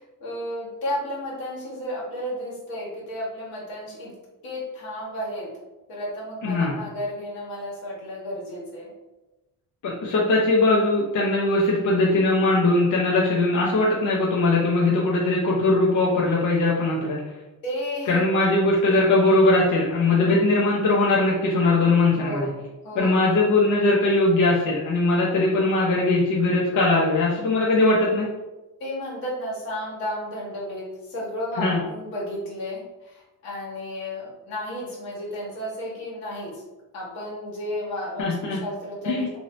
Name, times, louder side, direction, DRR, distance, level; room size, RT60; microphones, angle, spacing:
voice 1, 0.0-4.1 4.4-5.5 5.9-8.9 17.6-18.2 18.9-19.1 20.2-20.5 22.1-23.2 28.8-36.6 36.9-39.4, left 1 dB, 90° left, -5 dB, 1.5 m, -33 dB
voice 2, 6.4-6.8 9.8-17.2 18.1-22.5 23.0-28.3 31.6-31.8 38.2-38.6 39.0-39.3, left 2 dB, 60° left, -5 dB, 0.8 m, -20 dB
2.8 x 2.7 x 3.1 m, 1.1 s
cardioid pair, 105°, 34 cm